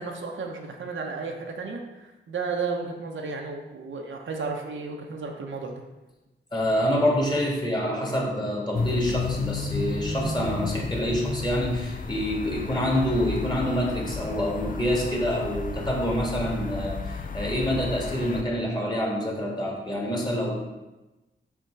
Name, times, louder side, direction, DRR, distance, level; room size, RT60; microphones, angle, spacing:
voice 1, 0.0-5.8, right 4 dB, 80° right, 2 dB, 0.9 m, -33 dB
voice 2, 6.5-20.5, equal, 20° left, -2 dB, 1.8 m, -26 dB
sound 1, 8.7-18.4, left 4 dB, 45° left, 0.5 m, -32 dB
5.9 x 3.7 x 6.0 m, 1.1 s
wide cardioid pair, 105°, 20 cm